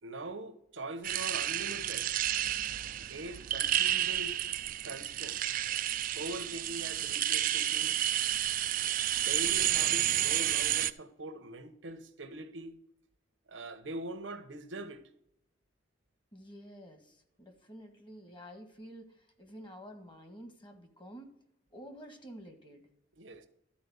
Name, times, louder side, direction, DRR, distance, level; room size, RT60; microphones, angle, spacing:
voice 1, 0.0-2.1 3.1-4.4 4.8-5.4 6.1-7.9 9.1-12.8 13.5-15.0 23.2-23.5, right 2 dB, 85° right, 1.1 m, -42 dB
sound 1, 1.0-10.9, right 12 dB, 45° right, 0.4 m, -31 dB
voice 2, 16.3-21.4 21.7-22.9, equal, 25° left, 1.6 m, -50 dB
13.0 x 4.4 x 7.0 m
head